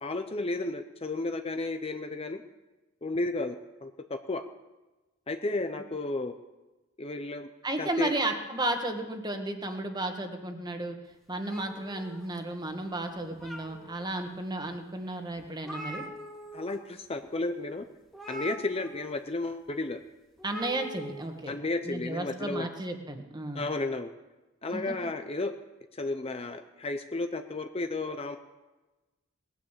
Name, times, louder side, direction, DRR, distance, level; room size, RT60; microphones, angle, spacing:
voice 1, 0.0-2.4 3.0-4.4 5.3-6.4 7.0-7.5 7.8-8.1 16.5-17.8 18.3-20.0 21.5-22.7 23.5-24.1 24.6-25.5 25.9-28.4, left 2 dB, 30° left, 7 dB, 0.7 m, -33 dB
voice 2, 7.6-11.0 11.3-16.0 20.4-21.6 21.8-23.7 24.7-25.1, right 2 dB, 20° right, 5 dB, 1.6 m, -33 dB
sound 1, 11.5-12.7 13.1-14.0 14.6-14.7 15.1-15.2 15.4-16.7 17.0-17.2 18.1-19.2 20.4-21.2, right 1 dB, ahead, 2.0 m, -43 dB
19.0 x 9.9 x 7.4 m, 1.1 s
head